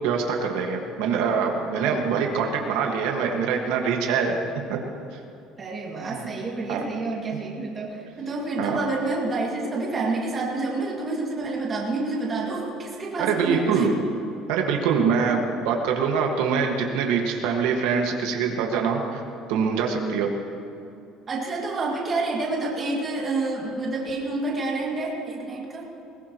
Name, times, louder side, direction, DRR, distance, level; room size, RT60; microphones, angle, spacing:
voice 1, 0.0-4.4 4.7-4.8 6.1-6.3 6.7-6.8 8.6-8.8 13.2-13.9 14.5-19.2 19.5-20.3, right 6 dB, 85° right, 1 dB, 1.8 m, -24 dB
voice 2, 5.6-13.9 21.3-25.9, right 3 dB, 20° right, -3 dB, 2.4 m, -28 dB
21.0 x 19.5 x 3.1 m, 2.7 s
cardioid pair, 180°, 0 cm